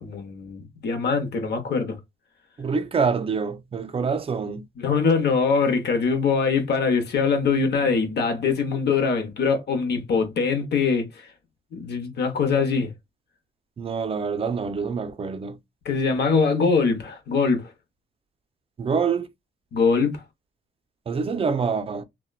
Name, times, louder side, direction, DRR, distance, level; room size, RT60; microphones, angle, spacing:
voice 1, 0.0-2.0 4.8-11.3 11.7-12.9 15.8-17.7 19.7-20.2, left 5 dB, 55° left, 0.8 m, -23 dB
voice 2, 2.6-4.6 13.8-15.6 18.8-19.3 21.1-22.0, right 5 dB, 30° right, 0.4 m, -26 dB
2.9 x 2.1 x 2.2 m
cardioid pair, 90°, 20 cm